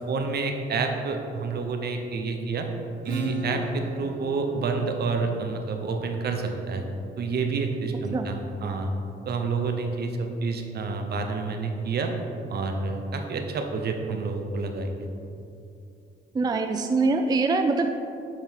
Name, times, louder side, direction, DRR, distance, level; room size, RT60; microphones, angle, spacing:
voice 1, 0.1-2.7 3.0-6.8 7.2-8.9 9.3-12.1 12.5-15.1, right 4 dB, 55° right, 4 dB, 0.8 m, -29 dB
Acoustic guitar / Strum, 3.1-8.4, right 1 dB, 85° right, 1.4 m, -37 dB
voice 2, 16.3-17.9, right 3 dB, 20° right, 5 dB, 0.4 m, -23 dB
8.7 x 3.7 x 4.6 m, 2.7 s
cardioid pair, 90°, 20 cm